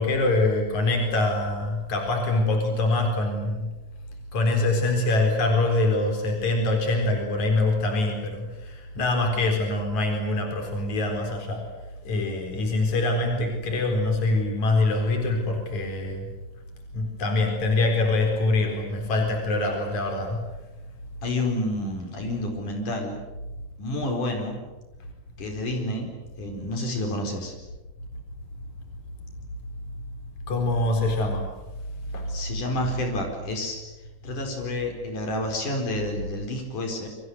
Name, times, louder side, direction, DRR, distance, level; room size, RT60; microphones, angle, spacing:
voice 1, 0.0-3.7 4.3-11.6 12.1-16.3 16.9-20.4 30.5-31.5 32.1-32.3, left 2 dB, 65° left, 3 dB, 5.5 m, -24 dB
voice 2, 21.2-23.2 23.8-24.6 25.4-27.5 32.3-33.8 34.2-37.1, left 1 dB, 85° left, 3 dB, 6.1 m, -29 dB
29.0 x 24.5 x 8.0 m, 1.1 s
omnidirectional pair, 3.5 m